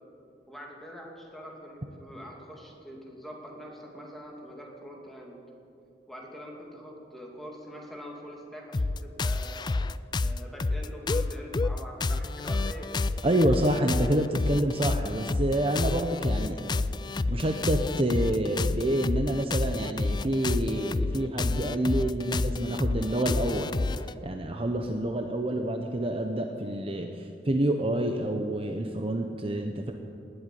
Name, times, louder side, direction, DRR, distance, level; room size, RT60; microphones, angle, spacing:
voice 1, 0.5-5.4 6.1-9.6 10.1-13.0, equal, ahead, -2 dB, 2.6 m, -44 dB
sound 1, 8.7-24.1, left 3 dB, 25° left, 0.3 m, -29 dB
voice 2, 13.2-16.7 17.3-29.9, right 1 dB, 35° right, 4 dB, 0.8 m, -28 dB
19.5 x 8.1 x 9.3 m, 2.6 s
head